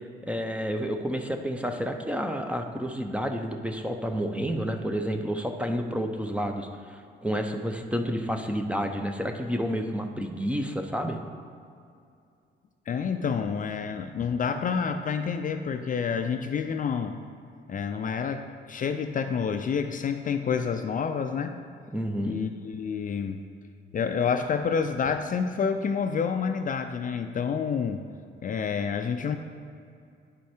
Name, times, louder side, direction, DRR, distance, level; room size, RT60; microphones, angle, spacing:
voice 1, 0.3-11.2 21.9-22.4, equal, 5° right, 5 dB, 0.6 m, -30 dB
voice 2, 12.9-17.2 17.7-21.6 22.2-23.4 23.9-28.0 28.4-29.4, left 6 dB, 40° left, 7 dB, 0.4 m, -28 dB
9.4 x 4.7 x 4.4 m, 2.4 s
cardioid pair, 90°, 20 cm